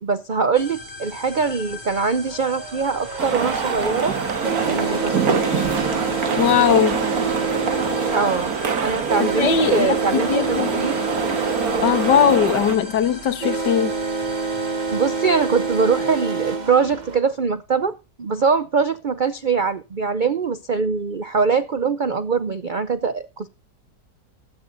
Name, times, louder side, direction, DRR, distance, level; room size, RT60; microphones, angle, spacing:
voice 1, 0.0-4.2 4.7-5.6 8.1-8.5 8.8-11.0 14.9-23.5, right 5 dB, 90° right, 0.4 m, -23 dB
sound 1, 0.5-16.2, left 1 dB, 10° left, 6.0 m, -39 dB
sound 2, 1.0-1.1 2.2-17.2, right 3 dB, 30° right, 1.1 m, -27 dB
sound 3, 3.2-12.8, right 6 dB, 60° right, 1.8 m, -25 dB
voice 2, 6.4-7.0 9.2-9.9 10.1-10.7 11.8-13.9, left 8 dB, 80° left, 1.8 m, -19 dB
16.5 x 12.5 x 2.6 m
omnidirectional pair, 1.8 m